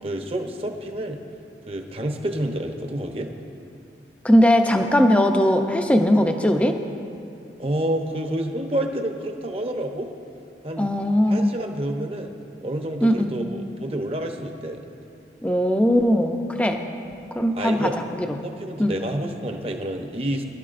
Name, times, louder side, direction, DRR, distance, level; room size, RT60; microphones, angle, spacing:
voice 1, 0.0-1.2 1.7-3.3 7.6-10.1 10.6-10.9 11.3-12.3 12.6-14.8 17.5-18.0 18.4-20.4, right 1 dB, 35° right, 4 dB, 0.8 m, -29 dB
voice 2, 4.2-6.8 10.8-11.5 13.0-13.3 15.4-16.8 17.3-17.9 18.3-18.4 18.8-18.9, equal, 5° left, 4 dB, 0.5 m, -19 dB
20.0 x 11.5 x 2.5 m, 2.5 s
head